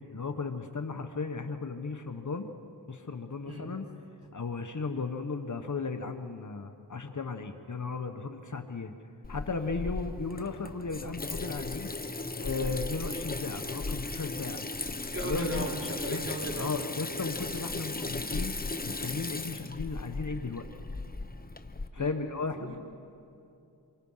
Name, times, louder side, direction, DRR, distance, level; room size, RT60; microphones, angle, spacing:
voice 1, 0.0-2.5 2.9-3.8 4.3-8.9 9.3-11.9 12.4-14.6 15.2-15.8 16.1-16.2 16.6-18.5 18.8-20.7 21.9-22.8, left 4 dB, 45° left, 7 dB, 1.3 m, -35 dB
Water tap faucet / Sink (filling or washing), 9.2-21.9, left 3 dB, 20° left, 1.0 m, -36 dB
voice 2, 15.1-16.8 22.0-22.2 22.6-22.8, right 1 dB, 35° right, -1 dB, 4.8 m, -37 dB
27.5 x 24.0 x 5.7 m, 2.7 s
cardioid pair, 60°, 41 cm